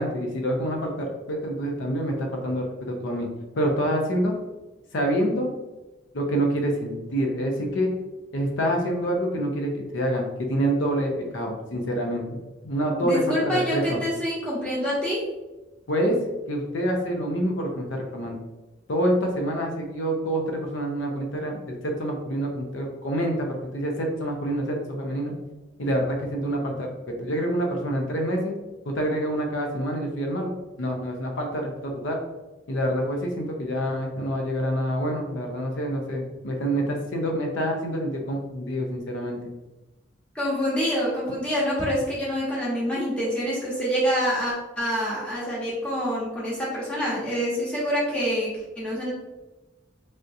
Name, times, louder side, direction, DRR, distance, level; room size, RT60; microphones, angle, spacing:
voice 1, 0.0-3.3 3.5-4.3 4.9-5.5 6.1-7.9 8.3-12.4 12.6-14.0 15.9-16.2 16.5-18.4 18.9-25.3 25.8-26.9 27.2-28.5 28.8-30.5 30.8-32.2 32.7-39.5, equal, 80° left, 2 dB, 0.5 m, -27 dB
voice 2, 13.0-15.2 40.3-49.1, equal, 5° left, -7 dB, 0.9 m, -26 dB
3.4 x 2.7 x 2.5 m, 1.1 s
head